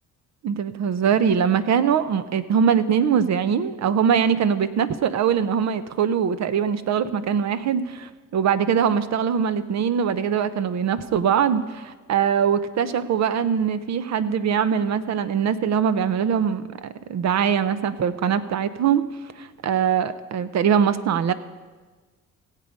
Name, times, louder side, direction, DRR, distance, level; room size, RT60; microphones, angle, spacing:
voice 1, 0.4-19.0 19.4-21.3, right 7 dB, 65° right, 13 dB, 0.8 m, -22 dB
16.5 x 8.4 x 5.4 m, 1.4 s
cardioid pair, 90°, 30 cm